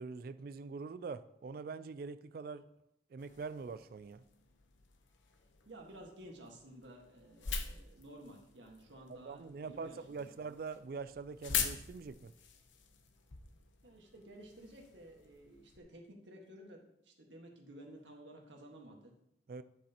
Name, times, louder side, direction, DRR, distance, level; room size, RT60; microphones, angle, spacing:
voice 1, 0.0-2.6 3.1-4.2 9.3-12.3 19.5-19.6, right 4 dB, 50° right, 13 dB, 0.3 m, -44 dB
sound 1, 3.2-15.8, left 7 dB, 90° left, 0.9 m, -45 dB
voice 2, 5.6-10.4 13.8-19.2, right 1 dB, 80° right, 1 dB, 1.6 m, -54 dB
11.0 x 7.1 x 2.9 m, 0.80 s
head